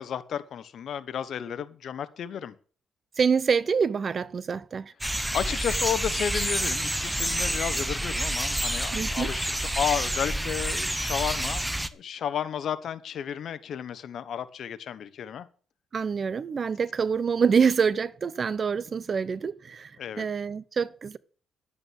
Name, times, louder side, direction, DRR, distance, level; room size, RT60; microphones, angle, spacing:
voice 1, 0.0-2.5 5.3-15.5 20.0-20.3, left 9 dB, 65° left, 1.1 m, -32 dB
voice 2, 3.2-4.9 8.9-9.3 15.9-19.9 20.2-21.2, right 6 dB, 45° right, 0.7 m, -26 dB
sound 1, 5.0-11.9, right 1 dB, 5° right, 0.9 m, -28 dB
11.0 x 8.8 x 6.4 m
cardioid pair, 90°, 0 cm